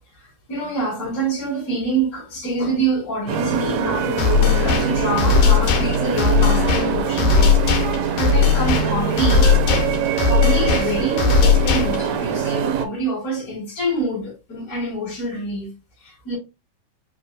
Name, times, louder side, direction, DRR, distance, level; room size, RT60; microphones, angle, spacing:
voice 1, 0.1-7.6 8.2-9.5 10.3-16.4, right 2 dB, 30° left, 2.0 m, -26 dB
sound 1, 3.3-12.9, right 8 dB, 80° right, 1.6 m, -23 dB
sound 2, 4.2-12.2, left 6 dB, 70° left, 2.2 m, -18 dB
5.2 x 3.4 x 2.2 m
omnidirectional pair, 3.7 m